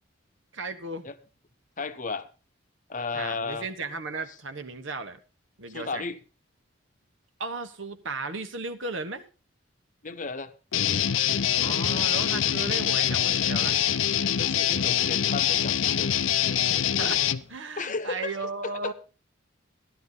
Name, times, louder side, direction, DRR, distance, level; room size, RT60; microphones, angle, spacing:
voice 1, 0.5-1.1 3.1-5.2 5.6-6.0 7.4-9.2 11.6-13.8 17.0-17.2 17.5-18.9, right 3 dB, 75° right, 9 dB, 1.3 m, -35 dB
voice 2, 1.8-2.3 2.9-3.7 5.7-6.2 10.0-10.5 14.4-16.1 17.8-18.9, left 4 dB, 40° left, 10 dB, 0.9 m, -34 dB
Guitar, 10.7-17.4, left 10 dB, 85° left, 0.6 m, -24 dB
14.0 x 11.5 x 4.0 m, 0.34 s
head